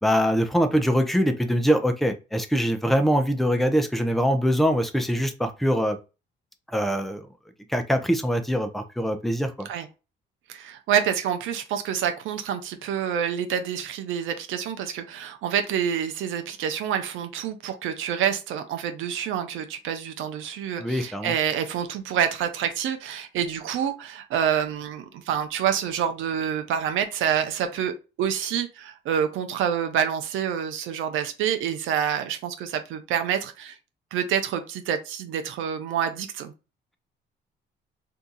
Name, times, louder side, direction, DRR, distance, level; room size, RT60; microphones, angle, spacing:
voice 1, 0.0-6.0 6.7-7.3 7.7-9.7 20.8-21.3, equal, ahead, 0.6 m, -23 dB
voice 2, 10.5-33.8 34.1-36.5, right 8 dB, 85° right, 0.5 m, -27 dB
2.8 x 2.3 x 3.8 m
cardioid pair, 90°, 20 cm